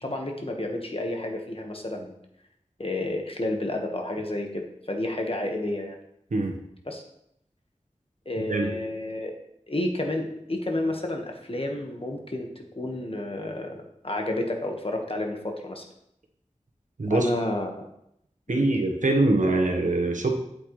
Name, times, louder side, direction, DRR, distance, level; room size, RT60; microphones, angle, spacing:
voice 1, 0.0-2.1 2.8-6.0 6.8-7.0 8.2-9.3 9.7-12.5 12.8-15.8 17.1-17.9 18.5-18.7, left 1 dB, 45° left, 2 dB, 1.4 m, -30 dB
voice 2, 17.0-17.3 18.5-20.3, right 2 dB, 90° right, 3 dB, 1.1 m, -23 dB
8.2 x 7.9 x 3.2 m, 0.76 s
wide cardioid pair, 45°, 13 cm